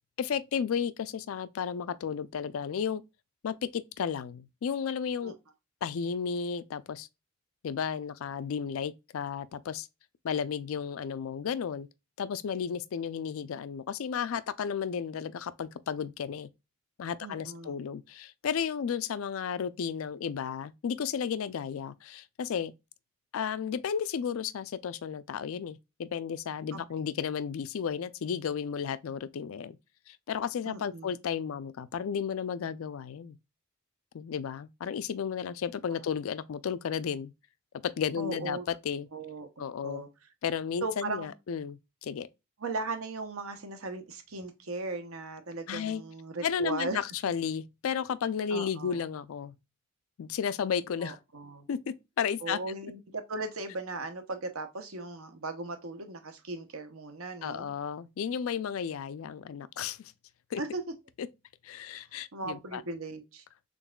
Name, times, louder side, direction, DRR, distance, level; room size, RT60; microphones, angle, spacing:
voice 1, 0.2-3.0 3.4-5.3 5.8-7.1 7.6-9.9 10.2-11.9 12.2-16.5 17.0-22.7 23.3-29.8 30.1-33.4 34.1-37.3 37.8-38.6 38.8-39.1 39.6-40.0 40.4-42.3 45.7-46.0 46.4-49.5 50.2-51.2 51.7-52.6 57.4-60.1 60.5-60.6 61.2-61.3 61.6-62.8, left 7 dB, 75° left, 0.4 m, -33 dB
voice 2, 17.2-17.8 26.7-27.0 30.7-31.2 38.2-38.6 39.1-40.1 40.8-41.3 42.6-47.0 48.5-49.0 51.0-51.7 52.4-57.7 60.6-60.8 62.0-62.1 62.3-63.4, right 3 dB, 80° right, 0.8 m, -38 dB
3.9 x 3.5 x 2.2 m
head